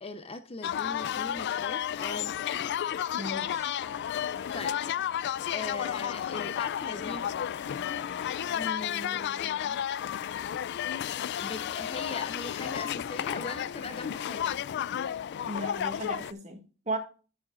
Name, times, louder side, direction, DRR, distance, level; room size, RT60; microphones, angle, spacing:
voice 1, 0.0-2.3 4.5-4.8 5.5-7.2 8.5-9.8 11.4-14.6, left 3 dB, 25° left, 9 dB, 0.7 m, -40 dB
sound 1, 0.6-16.3, left 10 dB, 50° left, 0.3 m, -32 dB
sound 2, 2.8-8.8, right 1 dB, 10° right, 2.3 m, -55 dB
voice 2, 3.2-3.7 15.4-17.0, right 1 dB, 35° right, 5 dB, 1.8 m, -36 dB
10.0 x 8.9 x 2.4 m, 0.35 s
head